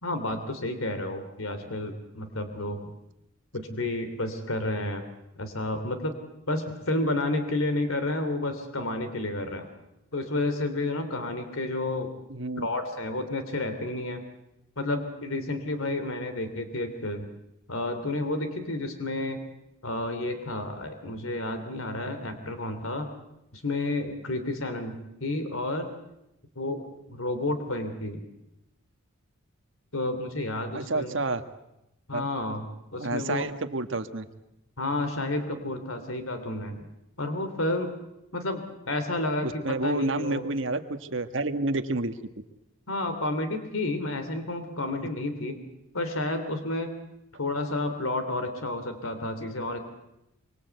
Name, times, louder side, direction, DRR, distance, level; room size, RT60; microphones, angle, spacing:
voice 1, 0.0-2.9 3.5-5.0 5.4-6.2 6.5-9.7 10.1-12.1 12.6-14.2 14.8-17.3 17.7-19.4 19.8-23.1 23.5-25.9 26.6-28.2 29.9-31.1 32.1-33.5 34.8-36.9 37.2-38.0 38.3-40.4 42.9-45.6 45.9-46.9 47.4-49.8, left 2 dB, 85° left, 8 dB, 2.8 m, -31 dB
voice 2, 12.3-12.7 30.7-31.4 32.1-32.3 32.9-34.3 39.4-42.1, right 2 dB, 60° right, 7 dB, 1.5 m, -29 dB
25.0 x 24.5 x 8.2 m, 0.87 s
head